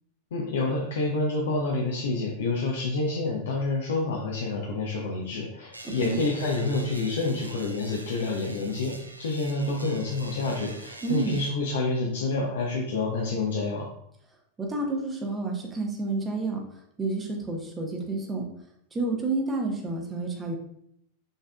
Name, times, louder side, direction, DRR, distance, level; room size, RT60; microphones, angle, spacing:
voice 1, 0.3-13.9, left 3 dB, 60° left, -1 dB, 0.6 m, -28 dB
sound 1, 5.7-11.5, right 1 dB, 85° right, 0.6 m, -45 dB
voice 2, 5.8-6.2 11.0-11.4 14.6-16.6 17.0-18.5 18.9-20.5, right 3 dB, 15° right, 1 dB, 0.8 m, -29 dB
5.4 x 3.6 x 2.3 m, 0.72 s
figure-of-eight pair, 90°, 0 cm